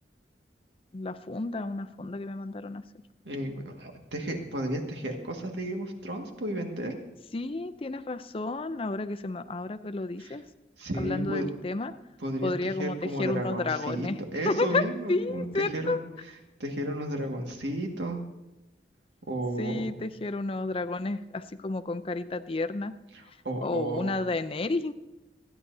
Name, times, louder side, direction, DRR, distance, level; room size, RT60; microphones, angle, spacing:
voice 1, 0.9-2.8 7.3-10.4 11.0-11.9 12.4-14.2 14.4-16.0 19.6-22.9 23.6-24.9, left 3 dB, 30° left, 10 dB, 0.5 m, -31 dB
voice 2, 3.3-6.9 10.2-10.4 10.8-11.5 12.2-16.0 16.6-18.2 19.3-19.9 23.1-24.1, right 1 dB, 85° right, 2 dB, 1.9 m, -33 dB
29.0 x 10.0 x 2.7 m, 1.0 s
head